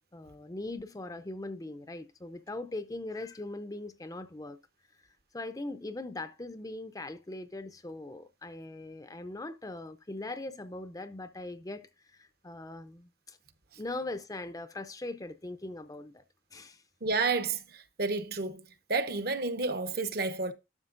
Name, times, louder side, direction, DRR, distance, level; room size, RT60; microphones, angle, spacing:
voice 1, 0.1-4.6 5.3-13.4 13.8-16.2 16.5-16.8, left 2 dB, 20° left, 0.5 m, -40 dB
voice 2, 17.0-17.6 18.0-18.6 18.9-20.5, right 3 dB, 55° right, 0.9 m, -30 dB
12.0 x 6.1 x 2.5 m
head